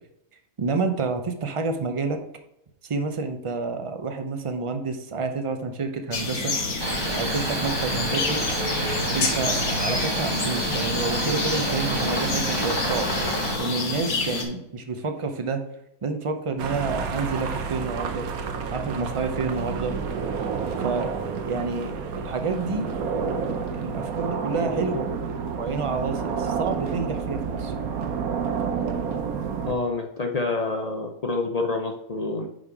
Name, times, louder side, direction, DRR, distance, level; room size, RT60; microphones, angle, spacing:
voice 1, 0.6-2.2 2.8-6.5 7.1-8.4 9.1-13.1 13.6-15.6 16.0-18.3 18.7-20.0 20.8-21.1 21.4-22.9 23.5-25.1 25.6-27.7, right 4 dB, 45° right, 6 dB, 0.4 m, -29 dB
sound 1, 6.1-14.4, left 3 dB, 85° left, 1.6 m, -28 dB
Cricket, 6.8-13.6, right 2 dB, 20° right, 0.8 m, -29 dB
sound 2, 16.6-29.7, right 6 dB, 80° right, 1.2 m, -29 dB
voice 2, 29.7-32.5, left 3 dB, 55° left, 3 dB, 0.4 m, -27 dB
5.3 x 5.2 x 4.7 m, 0.82 s
omnidirectional pair, 1.5 m